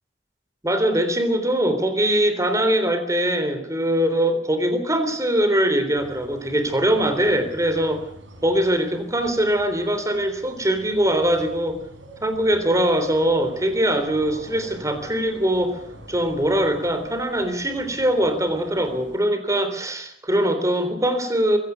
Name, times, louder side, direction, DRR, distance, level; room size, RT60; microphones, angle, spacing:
voice 1, 0.6-8.1 8.4-11.8 12.2-15.8 16.1-21.6, right 1 dB, 20° right, 9 dB, 3.5 m, -22 dB
sound 1, 5.9-19.2, right 1 dB, 90° right, 6.4 m, -44 dB
23.0 x 17.0 x 8.1 m, 0.67 s
head